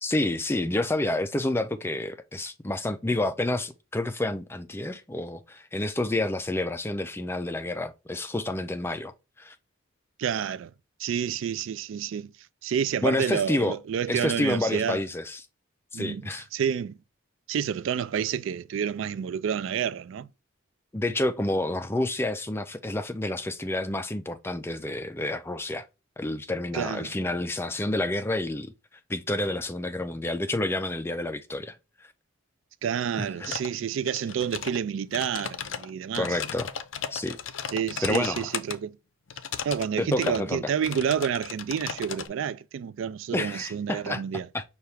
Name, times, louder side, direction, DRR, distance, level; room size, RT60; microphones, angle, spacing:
voice 1, 0.0-9.5 13.0-13.7 14.1-15.4 15.9-16.5 20.9-25.9 26.2-28.7 29.1-31.8 33.2-33.5 36.2-36.7 37.1-37.4 38.0-38.5 40.0-40.6 43.3-44.2 44.5-44.6, left 2 dB, 10° left, 0.3 m, -29 dB
voice 2, 10.2-10.7 11.0-12.3 12.6-15.0 15.9-16.2 16.5-16.9 17.5-20.3 26.7-27.1 32.8-36.4 37.7-39.0 39.6-44.5, right 8 dB, 70° right, 0.3 m, -29 dB
sound 1, 33.4-33.8 34.1-34.8 35.1-38.8 39.3-39.9 40.1-40.4 40.8-42.3, left 7 dB, 65° left, 0.5 m, -35 dB
5.6 x 2.4 x 3.2 m
head